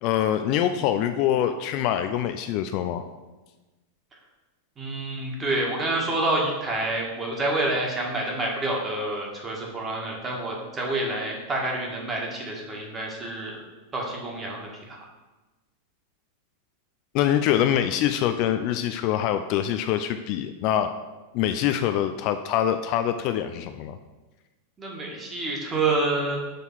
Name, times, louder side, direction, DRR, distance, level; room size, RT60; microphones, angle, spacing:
voice 1, 0.0-3.0 17.1-20.9 21.3-24.0, left 10 dB, 40° left, 8 dB, 0.4 m, -24 dB
voice 2, 4.8-13.6 13.9-15.0 24.8-26.4, right 2 dB, 20° right, -1 dB, 1.7 m, -28 dB
6.5 x 4.0 x 5.7 m, 1.1 s
figure-of-eight pair, 90°, 0 cm